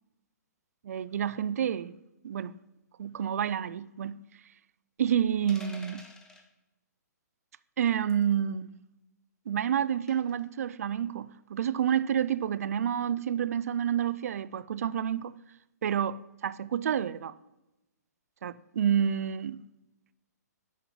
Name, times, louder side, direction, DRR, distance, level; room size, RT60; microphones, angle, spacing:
voice 1, 0.8-1.9 2.2-2.6 3.0-4.2 5.0-6.0 7.8-8.7 9.5-15.3 15.8-17.3 18.4-19.6, right 9 dB, 55° right, 0.4 m, -29 dB
sound 1, 5.5-6.5 8.1-8.3 10.1-10.4, left 1 dB, 5° left, 0.7 m, -49 dB
9.2 x 5.9 x 3.7 m
figure-of-eight pair, 125°, 9 cm